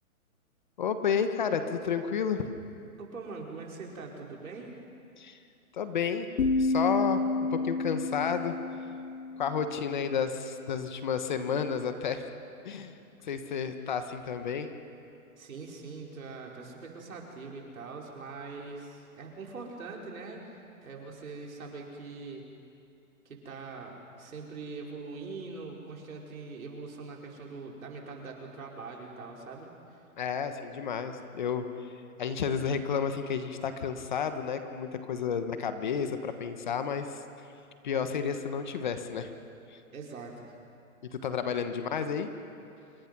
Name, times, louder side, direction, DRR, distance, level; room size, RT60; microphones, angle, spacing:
voice 1, 0.8-2.5 5.2-5.4 5.7-6.3 6.6-7.2 7.5-8.5 9.4-12.3 12.6-13.0 13.2-14.7 30.2-37.2 37.8-39.3 39.7-39.8 41.1-42.3, left 6 dB, 35° left, 8 dB, 1.2 m, -31 dB
voice 2, 3.0-4.8 15.4-22.4 23.3-29.7 39.9-40.5, right 4 dB, 70° right, -1 dB, 5.2 m, -42 dB
sound 1, 6.4-10.3, left 3 dB, 65° left, 1.1 m, -30 dB
27.0 x 23.5 x 6.1 m, 2.5 s
hypercardioid pair, 175°, 43 cm